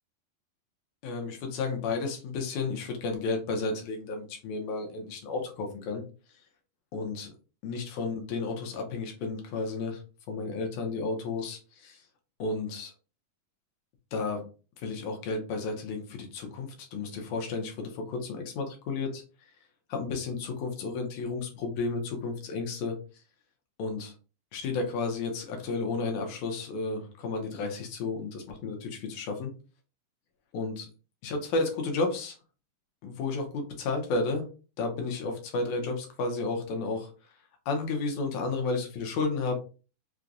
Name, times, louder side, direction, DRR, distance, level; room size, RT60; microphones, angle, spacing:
voice 1, 1.0-6.0 6.9-7.3 7.6-10.0 10.3-12.0 12.4-12.9 14.1-14.4 14.8-19.2 19.9-23.0 23.8-24.1 24.5-29.5 30.5-30.9 31.2-32.4 33.0-34.5 34.8-37.1 37.7-39.6, left 3 dB, 70° left, 3 dB, 1.9 m, -32 dB
5.9 x 2.2 x 2.5 m, 0.34 s
omnidirectional pair, 3.9 m